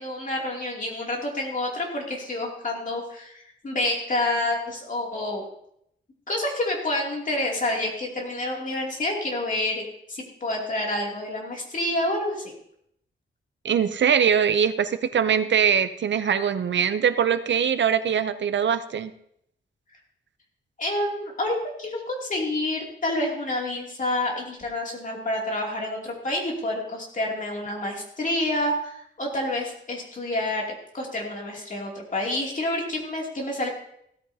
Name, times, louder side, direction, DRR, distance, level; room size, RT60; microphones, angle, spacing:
voice 1, 0.0-5.5 6.3-12.5 20.8-33.7, left 1 dB, 40° left, -1 dB, 2.7 m, -28 dB
voice 2, 13.6-19.1, right 7 dB, 65° right, 12 dB, 0.6 m, -22 dB
16.0 x 13.5 x 2.8 m, 0.72 s
wide cardioid pair, 175°, 20 cm